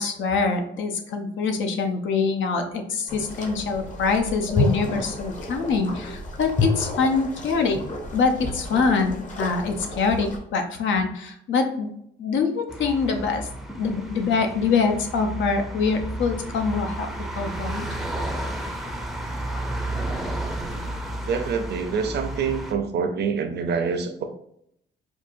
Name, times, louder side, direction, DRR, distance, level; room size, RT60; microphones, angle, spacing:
voice 1, 0.0-7.8 8.1-11.9 12.2-13.5 13.8-17.1 17.4-17.9, left 4 dB, 75° left, 5 dB, 0.7 m, -24 dB
sound 1, 3.1-10.4, left 2 dB, 40° left, 0.9 m, -30 dB
sound 2, 12.7-22.7, right 1 dB, ahead, 0.5 m, -32 dB
voice 2, 21.2-24.2, right 5 dB, 55° right, 6 dB, 0.6 m, -26 dB
4.5 x 2.5 x 2.6 m, 0.73 s
cardioid pair, 90°, 20 cm